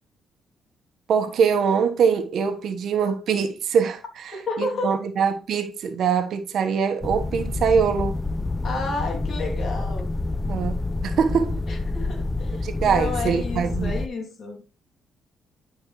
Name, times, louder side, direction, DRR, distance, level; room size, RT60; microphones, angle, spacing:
voice 1, 1.1-8.2 10.5-11.6 12.6-14.0, right 6 dB, 65° right, 1.2 m, -23 dB
voice 2, 4.3-4.9 8.6-10.1 11.7-14.6, left 3 dB, 55° left, 2.7 m, -31 dB
sound 1, 7.0-14.1, left 2 dB, 15° left, 0.5 m, -28 dB
11.5 x 5.3 x 3.1 m
cardioid pair, 90°, 0 cm